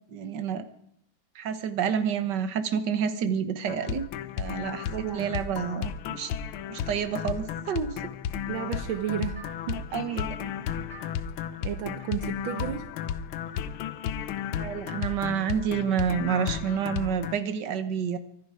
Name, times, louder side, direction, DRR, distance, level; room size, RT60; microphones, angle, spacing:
voice 1, 0.1-0.6 1.4-4.0 4.4-6.3 6.7-8.0 9.9-10.5 14.6-18.2, right 7 dB, 60° right, 10 dB, 1.8 m, -29 dB
sound 1, 3.7-17.4, left 8 dB, 85° left, 1.6 m, -34 dB
voice 2, 4.9-5.4 8.5-9.9 11.6-12.9, right 10 dB, 75° right, 9 dB, 1.7 m, -33 dB
sound 2, 8.5-13.9, right 3 dB, 20° left, 6.6 m, -52 dB
24.0 x 11.0 x 4.9 m, 0.71 s
omnidirectional pair, 2.2 m